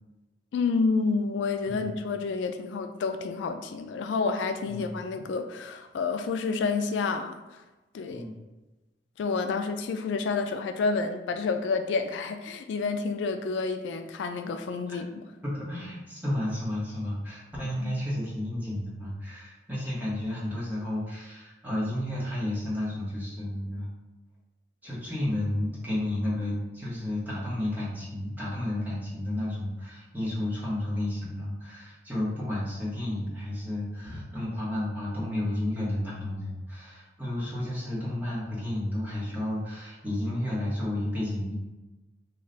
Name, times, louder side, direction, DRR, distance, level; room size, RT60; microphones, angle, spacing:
voice 1, 0.5-7.6 7.9-8.2 9.2-15.2 17.8-18.0, left 4 dB, 85° left, 7 dB, 0.3 m, -29 dB
voice 2, 15.4-23.9 24.8-41.5, left 1 dB, 10° right, -8 dB, 1.0 m, -32 dB
3.2 x 2.4 x 3.8 m, 1.1 s
head